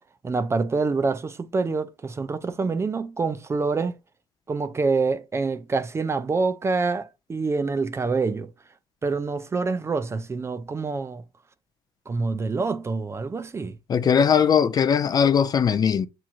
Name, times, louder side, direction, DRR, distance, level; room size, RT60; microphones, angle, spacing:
voice 1, 0.2-4.0 4.5-8.5 9.0-11.2 12.1-13.8, right 4 dB, 20° right, 0.5 m, -26 dB
voice 2, 13.9-16.1, left 7 dB, 35° left, 0.4 m, -19 dB
7.2 x 3.0 x 2.4 m
supercardioid pair, 95°, 12 cm